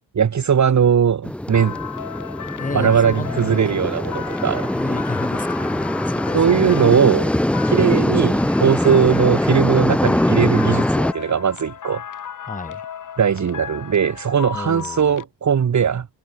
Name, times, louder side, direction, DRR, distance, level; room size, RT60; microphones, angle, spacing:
voice 1, 0.1-1.8 2.7-4.7 6.3-7.3 7.7-12.0 13.2-16.1, right 7 dB, 40° right, 1.9 m, -19 dB
sound 1, 1.2-11.1, left 1 dB, 5° left, 0.6 m, -22 dB
sound 2, 1.5-15.2, left 9 dB, 45° left, 1.5 m, -35 dB
voice 2, 2.6-3.9 4.7-6.7 7.8-7.9 12.5-12.8 14.5-15.2, left 3 dB, 20° left, 6.3 m, -31 dB
wide cardioid pair, 155°, 43 cm